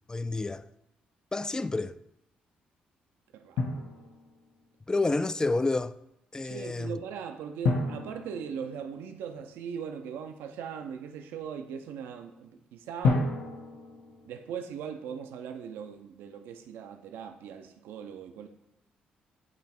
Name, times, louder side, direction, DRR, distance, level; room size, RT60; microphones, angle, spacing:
voice 1, 0.1-0.7 1.3-2.0 4.9-6.0 6.3-7.0, left 3 dB, 20° left, 0.3 m, -29 dB
voice 2, 3.3-4.1 6.4-13.3 14.3-18.5, right 7 dB, 75° right, 0.4 m, -40 dB
Drum, 3.6-4.6 7.6-9.5 13.0-15.0, left 3 dB, 70° left, 0.9 m, -31 dB
8.3 x 3.1 x 4.3 m
hypercardioid pair, 50°, 4 cm